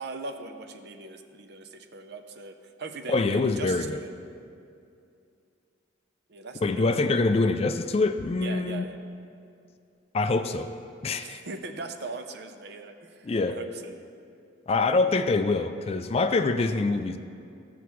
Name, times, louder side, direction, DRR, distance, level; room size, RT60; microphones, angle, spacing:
voice 1, 0.0-4.1 6.3-6.9 8.4-9.0 11.2-14.0, right 3 dB, 60° right, 7 dB, 0.6 m, -40 dB
voice 2, 3.1-4.0 6.6-8.8 10.1-10.7 11.0-11.4 13.2-13.6 14.7-17.2, left 3 dB, 30° left, 9 dB, 0.3 m, -25 dB
14.5 x 6.9 x 3.1 m, 2.5 s
head